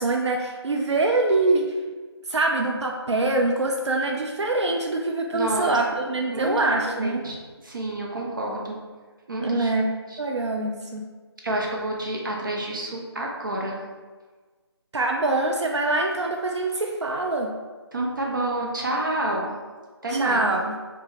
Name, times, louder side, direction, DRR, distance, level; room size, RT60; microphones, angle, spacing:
voice 1, 0.0-1.6 2.3-7.2 9.4-9.9 10.2-11.0 14.9-17.5 20.1-20.8, right 2 dB, 85° right, 1 dB, 0.4 m, -24 dB
voice 2, 5.3-5.8 6.3-6.6 6.8-7.4 7.6-8.8 9.3-9.7 10.1-10.2 11.4-13.8 17.9-19.5 20.0-20.5, right 1 dB, 50° right, -1 dB, 0.6 m, -28 dB
3.2 x 2.2 x 3.2 m, 1.4 s
figure-of-eight pair, 160°, 14 cm